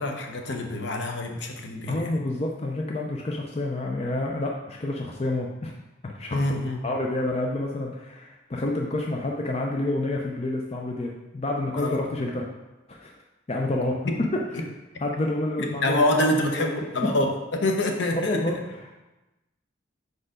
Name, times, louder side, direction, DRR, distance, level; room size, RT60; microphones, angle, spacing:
voice 1, 0.0-2.2 6.3-7.0 11.8-12.0 14.1-14.2 14.5-14.6 15.6-18.6, left 1 dB, 65° left, 3 dB, 0.8 m, -26 dB
voice 2, 1.9-5.7 6.0-6.4 6.8-12.4 12.9-13.1 13.5-14.0 15.0-16.0 16.4-16.7 18.1-18.6, left 2 dB, 30° left, 0 dB, 0.5 m, -28 dB
4.8 x 4.5 x 4.9 m, 1.0 s
head